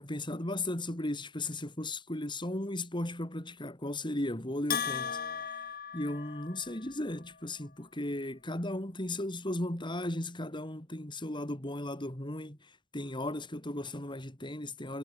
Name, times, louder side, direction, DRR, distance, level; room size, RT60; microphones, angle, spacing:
voice 1, 0.0-5.2 5.9-15.0, left 1 dB, 25° left, 3.1 m, -36 dB
Bell, 4.7-6.8, left 7 dB, 50° left, 2.5 m, -36 dB
head